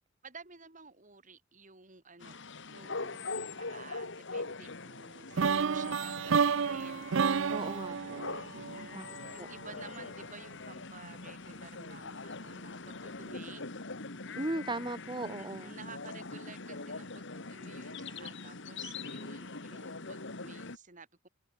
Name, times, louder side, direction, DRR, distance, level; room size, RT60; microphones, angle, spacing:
voice 1, 0.2-2.4 2.7-7.2 8.5-9.1 9.3-13.6 15.4-21.3, right 4 dB, 40° right, 4.5 m, -53 dB
sound 1, 2.2-20.8, left 3 dB, 60° left, 2.1 m, -43 dB
sound 2, 5.4-9.3, right 6 dB, 65° right, 0.6 m, -30 dB
voice 2, 7.5-8.2 8.9-9.1 9.4-9.5 14.4-15.7, right 2 dB, 20° right, 1.4 m, -37 dB
open air
head